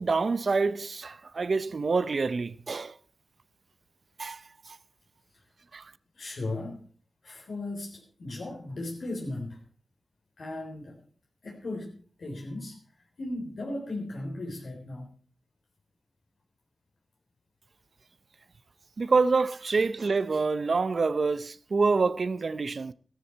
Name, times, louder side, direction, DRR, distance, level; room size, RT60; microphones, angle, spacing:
voice 1, 0.0-3.0 4.2-4.4 5.7-5.9 19.0-22.9, right 4 dB, 65° right, 0.6 m, -26 dB
voice 2, 6.1-6.8 7.2-9.6 10.4-11.0 11.4-12.8 13.2-15.1, left 2 dB, 80° left, 3.8 m, -36 dB
14.5 x 13.5 x 4.5 m
wide cardioid pair, 65°, 0 cm